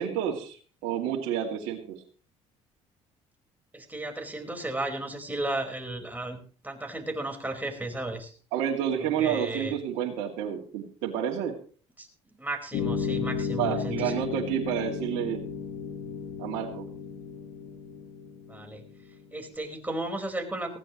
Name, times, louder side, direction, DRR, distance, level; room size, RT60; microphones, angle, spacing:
voice 1, 0.0-2.0 8.5-11.5 13.6-15.4 16.4-16.9, right 9 dB, 75° right, 0 dB, 2.6 m, -29 dB
voice 2, 3.7-8.3 9.0-9.7 12.0-12.1 12.4-14.4 18.5-18.8 19.3-20.8, right 2 dB, 10° right, 2 dB, 4.8 m, -34 dB
sound 1, 12.7-19.3, left 6 dB, 70° left, 6.9 m, -34 dB
19.0 x 15.5 x 3.1 m, 0.40 s
hypercardioid pair, 65°, 15 cm